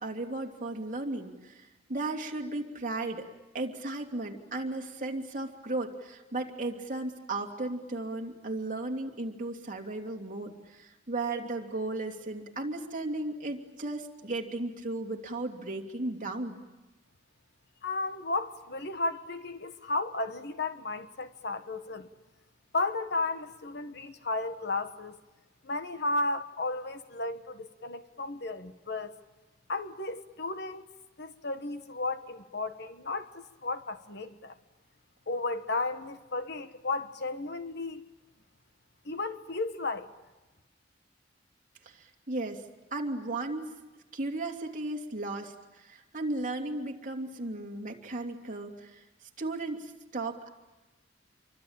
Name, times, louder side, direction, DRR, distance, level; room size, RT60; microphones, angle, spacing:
voice 1, 0.0-3.3 3.5-16.6 41.8-42.6 42.9-43.7 44.1-49.0 49.4-50.5, right 2 dB, 45° right, 2 dB, 2.9 m, -35 dB
voice 2, 17.8-22.1 22.7-25.2 25.6-29.1 29.7-30.8 31.2-34.6 35.3-38.0 39.0-40.1, left 2 dB, 60° left, 9 dB, 1.5 m, -34 dB
27.5 x 24.5 x 8.9 m, 1.1 s
head